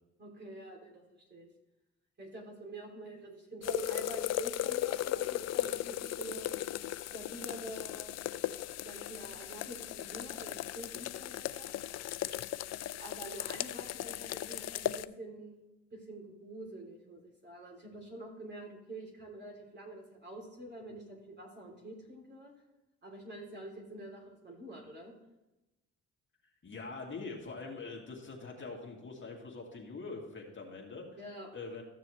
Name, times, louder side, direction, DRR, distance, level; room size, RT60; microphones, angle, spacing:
voice 1, 0.2-1.5 2.2-6.5 7.1-8.1 8.8-11.7 13.0-15.6 15.9-22.5 23.0-25.1 31.2-31.5, right 1 dB, 35° right, -1 dB, 3.0 m, -47 dB
sound 1, 3.6-15.1, left 13 dB, 60° left, 0.4 m, -37 dB
voice 2, 26.6-31.1 31.5-31.8, left 3 dB, 40° left, -1 dB, 2.0 m, -43 dB
14.0 x 6.7 x 3.1 m, 1.0 s
cardioid pair, 90°, 30 cm